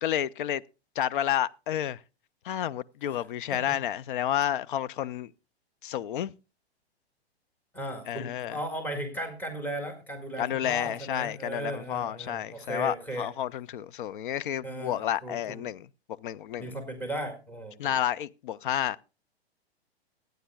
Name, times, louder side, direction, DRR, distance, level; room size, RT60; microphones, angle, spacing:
voice 1, 0.0-0.6 1.0-2.0 2.4-5.3 5.8-6.3 8.1-8.6 10.4-15.9 16.2-16.8 17.8-19.0, left 11 dB, 55° left, 0.5 m, -30 dB
voice 2, 7.7-13.3 14.6-15.6 16.6-18.0, right 1 dB, 5° left, 1.9 m, -36 dB
24.5 x 9.3 x 2.3 m
hypercardioid pair, 115°, 32 cm